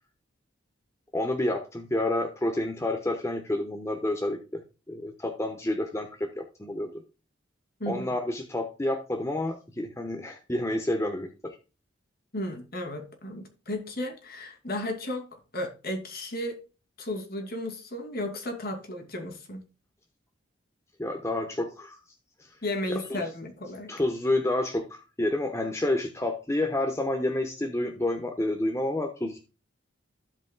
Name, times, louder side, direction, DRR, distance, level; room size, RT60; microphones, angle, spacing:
voice 1, 1.1-4.6 4.9-6.9 7.9-11.6 21.0-22.0 22.4-22.6 22.9-23.3 23.9-29.4, left 1 dB, 15° left, 1.0 m, -29 dB
voice 2, 12.3-15.3 15.5-16.6 17.0-19.6 22.6-23.9, left 1 dB, 50° left, 2.5 m, -34 dB
15.5 x 5.2 x 2.2 m
head